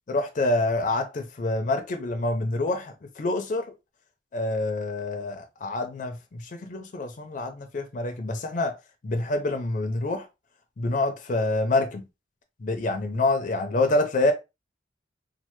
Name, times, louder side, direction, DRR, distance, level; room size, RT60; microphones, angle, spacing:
voice 1, 0.1-3.7 4.3-8.7 9.0-10.2 10.8-12.1 12.6-14.3, left 2 dB, 45° left, 0.4 m, -27 dB
3.1 x 2.0 x 3.1 m
head